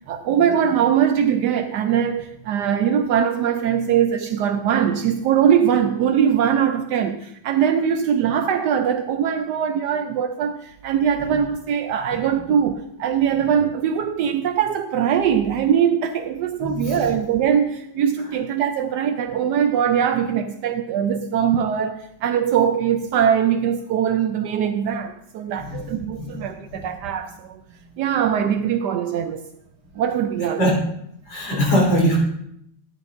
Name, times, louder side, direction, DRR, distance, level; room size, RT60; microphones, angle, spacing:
voice 1, 0.0-27.6 28.0-29.4 29.9-30.6, right 8 dB, 85° right, 0.9 m, -21 dB
voice 2, 16.6-17.1 25.6-25.8 26.2-26.4 26.7-26.8 30.6-30.8 31.3-32.2, equal, 55° left, 4.5 m, -21 dB
13.5 x 10.0 x 2.6 m
omnidirectional pair, 2.4 m